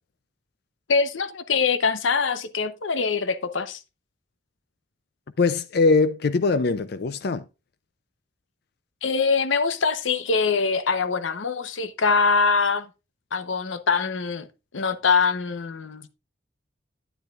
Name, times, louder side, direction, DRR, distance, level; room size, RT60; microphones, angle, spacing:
voice 1, 0.9-3.8 9.0-12.9 13.3-14.5 14.7-16.1, left 4 dB, 90° left, 0.8 m, -23 dB
voice 2, 5.4-7.4, left 4 dB, 55° left, 0.4 m, -21 dB
10.0 x 9.2 x 2.4 m
head